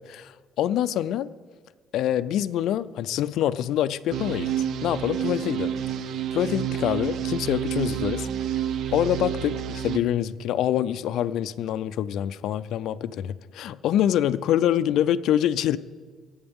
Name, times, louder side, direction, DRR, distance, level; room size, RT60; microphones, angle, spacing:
voice 1, 0.1-1.3 1.9-4.5 4.8-5.7 6.3-8.3 8.9-15.8, left 11 dB, 75° left, 14 dB, 0.4 m, -25 dB
sound 1, 4.1-10.0, right 10 dB, 70° right, 0.5 m, -29 dB
23.0 x 8.7 x 3.6 m, 1.5 s
cardioid pair, 105°, 0 cm